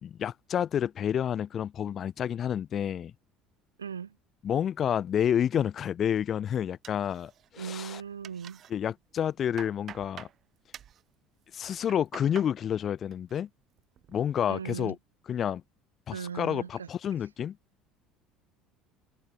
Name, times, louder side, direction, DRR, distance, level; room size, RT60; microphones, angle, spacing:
voice 1, 0.0-3.1 4.4-8.0 8.7-10.3 11.5-13.5 14.1-15.0 15.3-15.6 16.1-17.6, left 9 dB, 40° left, 1.9 m, -29 dB
voice 2, 3.8-4.2 7.6-8.6 14.5-15.0 16.1-16.9, right 7 dB, 85° right, 2.3 m, -38 dB
sound 1, 6.8-7.7 8.0-8.7 9.2-10.4 10.7-11.0 11.7-12.5 12.9-13.4 13.8-14.2, right 10 dB, 45° right, 1.7 m, -47 dB
figure-of-eight pair, 65°, 0 cm